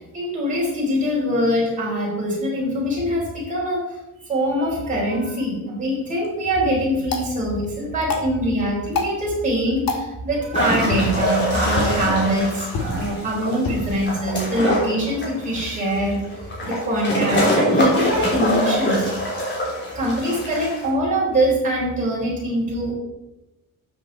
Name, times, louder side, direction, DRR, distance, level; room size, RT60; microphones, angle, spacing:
voice 1, 0.1-4.0 4.2-19.4 19.9-22.9, equal, 20° right, -5 dB, 4.2 m, -23 dB
sound 1, 5.9-16.0, left 3 dB, 75° left, 1.9 m, -32 dB
sound 2, 10.5-20.9, equal, 30° left, 3.4 m, -24 dB
12.5 x 7.6 x 4.1 m, 0.98 s
cardioid pair, 180°, 35 cm